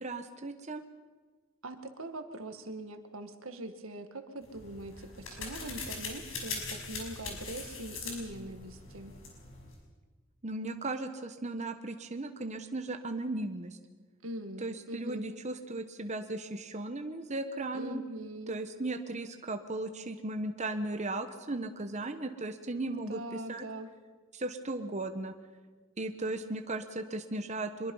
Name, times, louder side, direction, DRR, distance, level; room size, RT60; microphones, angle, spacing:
voice 1, 0.0-0.8 10.4-13.8 14.6-18.0 18.5-23.7 24.3-25.3 26.0-27.9, right 2 dB, 35° right, 7 dB, 1.1 m, -36 dB
voice 2, 1.6-9.1 14.2-15.2 17.7-18.6 23.1-23.9 26.4-26.6, right 1 dB, 85° right, 7 dB, 2.0 m, -42 dB
sound 1, 4.4-9.8, left 4 dB, 75° left, 5.9 m, -41 dB
24.5 x 22.5 x 5.6 m, 1.4 s
head